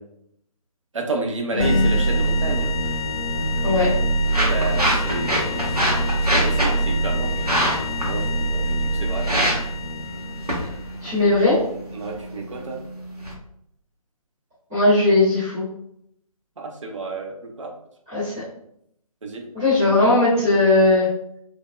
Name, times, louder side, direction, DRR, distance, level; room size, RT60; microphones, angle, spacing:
voice 1, 0.9-2.7 4.4-5.7 6.2-7.3 8.0-9.3 11.9-12.8 16.6-17.7 18.1-18.3 19.2-19.4, right 3 dB, 55° right, 2 dB, 0.5 m, -30 dB
voice 2, 1.5-1.9 3.6-3.9 11.0-11.6 14.7-15.6 18.1-18.3 19.5-21.1, left 2 dB, 5° right, -15 dB, 0.3 m, -18 dB
sound 1, 1.6-11.0, right 1 dB, 65° left, 0.6 m, -24 dB
sound 2, 3.3-13.3, equal, 85° right, 0.9 m, -27 dB
3.3 x 2.1 x 2.2 m, 0.72 s
figure-of-eight pair, 145°, 19 cm